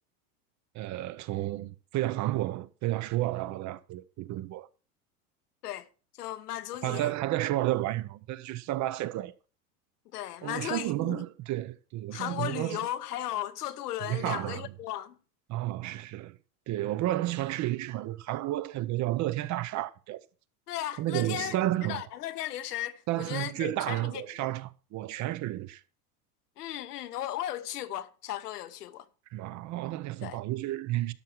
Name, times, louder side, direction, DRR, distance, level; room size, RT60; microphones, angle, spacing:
voice 1, 0.7-4.7 6.8-9.3 10.4-12.8 14.0-14.7 15.5-16.4 16.7-20.2 21.0-22.0 23.1-25.8 29.3-31.1, right 15 dB, 40° right, 0.8 m, -31 dB
voice 2, 6.2-7.1 10.1-11.2 12.1-15.2 20.7-21.6 21.9-24.2 26.6-29.1 30.2-30.4, left 13 dB, 90° left, 1.2 m, -36 dB
12.5 x 5.7 x 6.1 m
supercardioid pair, 115°, 45 cm